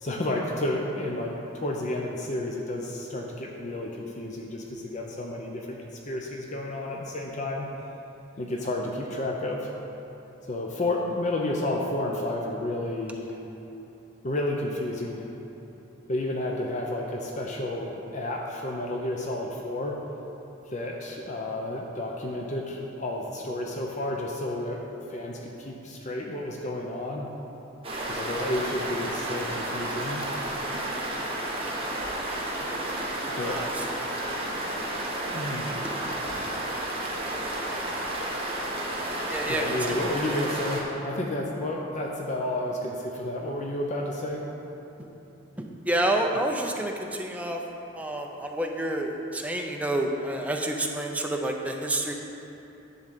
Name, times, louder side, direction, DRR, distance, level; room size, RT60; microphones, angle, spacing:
voice 1, 0.0-7.7 8.4-9.7 10.5-13.4 14.2-15.3 16.1-20.0 20.7-24.8 25.1-27.3 28.1-30.2 33.4-33.6 35.3-35.9 39.5-44.5, left 1 dB, 35° left, -1 dB, 0.7 m, -31 dB
sound 1, 27.8-40.8, right 1 dB, 30° right, 1.2 m, -31 dB
voice 2, 33.4-34.1 39.3-40.1 45.0-45.1 45.6-47.6 48.0-52.1, right 1 dB, 5° right, 1 dB, 0.6 m, -29 dB
10.5 x 3.9 x 7.5 m, 3.0 s
head